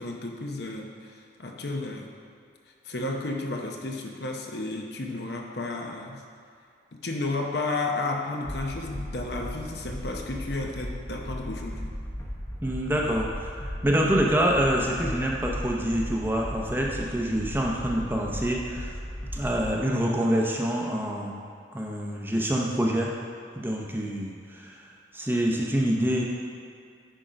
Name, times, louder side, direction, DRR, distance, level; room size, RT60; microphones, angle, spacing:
voice 1, 0.0-2.1 2.8-6.2 6.9-11.9, left 2 dB, 60° left, 1 dB, 0.8 m, -32 dB
sound 1, 8.4-19.7, equal, 15° left, 0.9 m, -36 dB
voice 2, 12.6-19.0 19.3-21.4 21.7-23.1 23.6-26.2, equal, 10° right, -2 dB, 0.7 m, -26 dB
10.0 x 3.8 x 5.1 m, 2.4 s
head